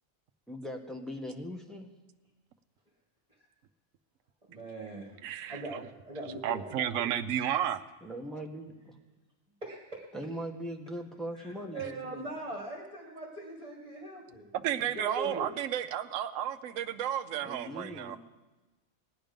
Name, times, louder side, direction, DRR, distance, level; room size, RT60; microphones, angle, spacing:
voice 1, 0.5-1.9 8.0-9.0 10.1-12.3 17.4-18.2, equal, ahead, 1 dB, 1.2 m, -40 dB
voice 2, 4.5-5.2 5.5-7.1 9.6-10.1 11.3-14.5 14.9-15.6, right 1 dB, 25° right, -2 dB, 2.0 m, -41 dB
voice 3, 5.2-5.8 6.3-7.8 14.5-18.2, right 10 dB, 75° right, 9 dB, 1.0 m, -32 dB
18.5 x 10.0 x 5.2 m, 1.1 s
omnidirectional pair, 1.4 m